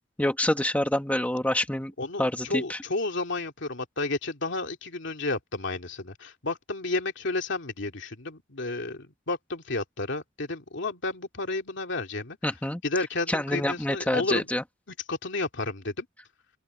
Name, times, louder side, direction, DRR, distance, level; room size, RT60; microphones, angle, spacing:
voice 1, 0.2-1.9 2.2-2.8 12.4-12.8 13.3-14.6, left 1 dB, 10° left, 1.5 m, -27 dB
voice 2, 2.0-12.4 12.8-14.5 15.1-16.1, left 2 dB, 65° left, 2.6 m, -31 dB
head